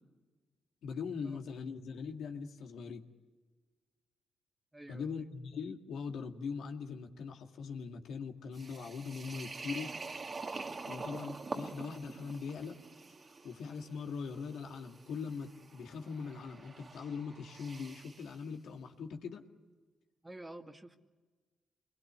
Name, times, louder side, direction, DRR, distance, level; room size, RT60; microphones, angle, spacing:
voice 1, 0.8-3.1 4.9-9.9 10.9-12.8 13.4-19.4, left 5 dB, 80° left, 3 dB, 2.2 m, -41 dB
voice 2, 4.7-5.1 20.2-21.0, right 1 dB, 15° right, 5 dB, 2.0 m, -49 dB
sound 1, 8.5-18.3, right 3 dB, 40° right, 1.9 m, -46 dB
26.5 x 21.5 x 8.3 m, 1.3 s
cardioid pair, 75°, 0 cm